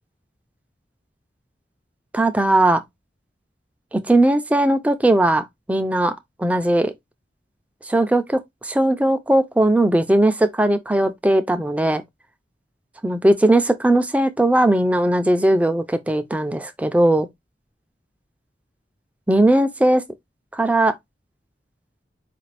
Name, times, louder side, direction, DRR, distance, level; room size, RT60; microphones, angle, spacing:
voice 1, 2.1-2.8 3.9-6.9 7.9-12.0 13.0-17.3 19.3-20.0 20.5-21.0, right 1 dB, 10° right, 0.4 m, -18 dB
4.8 x 2.5 x 3.2 m
head